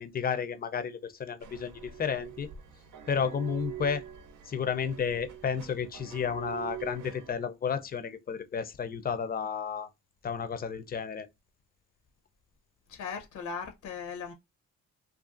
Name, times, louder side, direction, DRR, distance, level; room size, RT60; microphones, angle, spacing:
voice 1, 0.0-2.5 3.1-4.0 4.4-9.9 10.2-11.3, left 6 dB, 30° left, 0.5 m, -32 dB
sound 1, 1.4-7.3, right 9 dB, 80° right, 0.6 m, -44 dB
voice 2, 12.9-14.3, left 6 dB, 75° left, 0.7 m, -38 dB
2.5 x 2.4 x 2.4 m
cardioid pair, 90°, 30 cm